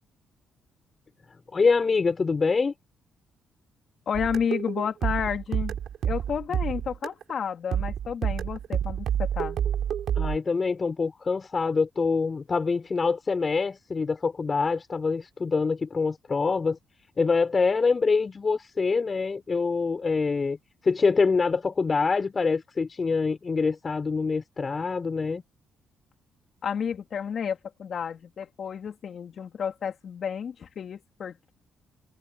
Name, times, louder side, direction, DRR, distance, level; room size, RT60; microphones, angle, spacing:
voice 1, 1.3-2.7 10.1-16.8 17.2-20.6 20.8-25.4, left 4 dB, 35° left, 6.6 m, -25 dB
voice 2, 4.1-5.8 6.0-9.6 26.6-31.5, left 7 dB, 55° left, 3.1 m, -31 dB
sound 1, 4.1-7.3 7.7-10.4, right 9 dB, 65° right, 4.3 m, -28 dB
cardioid pair, 90°, 0 cm